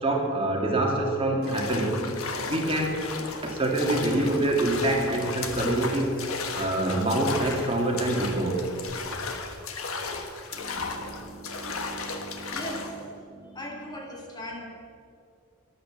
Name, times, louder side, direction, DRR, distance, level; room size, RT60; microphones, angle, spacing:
voice 1, 0.0-2.0 2.4-3.0 3.4-6.2 6.5-8.7 9.1-9.2 10.5-12.7 13.3-13.6, right 1 dB, 25° right, 0 dB, 2.1 m, -27 dB
sound 1, 1.4-13.0, left 4 dB, 80° left, 1.4 m, -35 dB
voice 2, 12.5-12.9 13.5-14.7, equal, 20° left, 0 dB, 1.7 m, -38 dB
13.0 x 11.0 x 7.6 m, 2.5 s
head